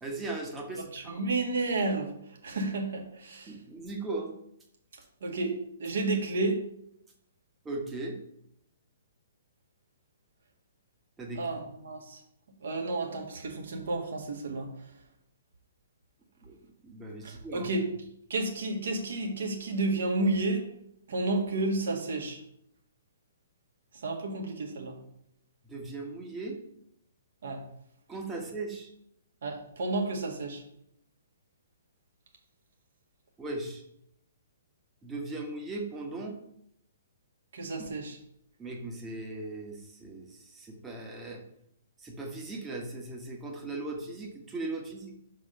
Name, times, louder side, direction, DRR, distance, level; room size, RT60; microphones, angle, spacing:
voice 1, 0.0-1.1 3.5-4.3 7.6-8.2 11.2-11.4 16.4-16.5 16.8-17.7 25.6-26.6 28.1-28.9 33.4-33.8 35.0-36.4 38.6-41.4 42.0-45.1, right 2 dB, 10° right, 1 dB, 1.4 m, -38 dB
voice 2, 0.8-2.1 2.4-3.5 5.2-6.6 11.4-12.2 12.6-14.7 17.2-17.9 18.3-20.7 21.1-22.4 24.0-25.0 27.4-27.6 29.4-30.6 37.5-38.2, right 2 dB, 55° right, 1 dB, 1.8 m, -31 dB
6.1 x 5.2 x 5.3 m, 0.73 s
figure-of-eight pair, 120°, 0 cm